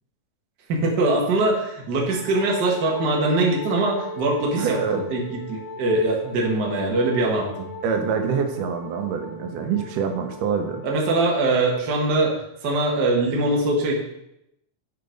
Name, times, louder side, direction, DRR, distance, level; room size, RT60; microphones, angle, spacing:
voice 1, 0.7-7.7 10.8-12.3 12.6-14.0, right 2 dB, 50° right, -1 dB, 1.3 m, -22 dB
Wind instrument woodwind instrument, 2.0-12.0, left 1 dB, 40° left, 0.7 m, -38 dB
voice 2, 4.6-5.0 7.8-10.8, right 6 dB, 85° right, 5 dB, 2.4 m, -25 dB
8.9 x 3.9 x 5.1 m, 0.82 s
omnidirectional pair, 3.7 m